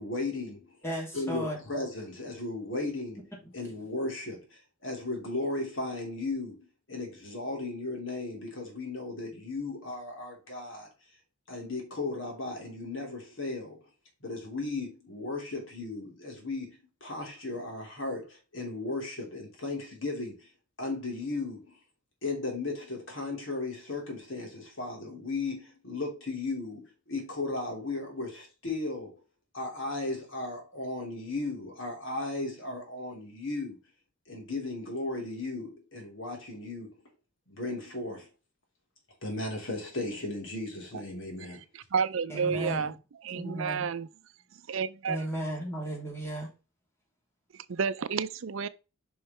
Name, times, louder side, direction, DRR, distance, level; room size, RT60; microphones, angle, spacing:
voice 1, 0.0-0.7 1.1-3.2 3.5-6.6 6.9-10.9 11.5-13.8 14.2-20.5 20.8-21.7 22.2-29.2 29.5-33.8 34.3-37.0 37.5-38.3 39.2-41.6 42.5-42.9, left 2 dB, 65° left, 3.1 m, -36 dB
voice 2, 0.8-1.6 42.3-42.9 43.3-43.9 45.0-46.5, right 1 dB, 15° left, 3.3 m, -35 dB
voice 3, 41.9-42.9 43.2-44.1 44.7-45.2 47.7-48.7, right 6 dB, 70° right, 0.5 m, -30 dB
5.6 x 5.5 x 4.3 m
head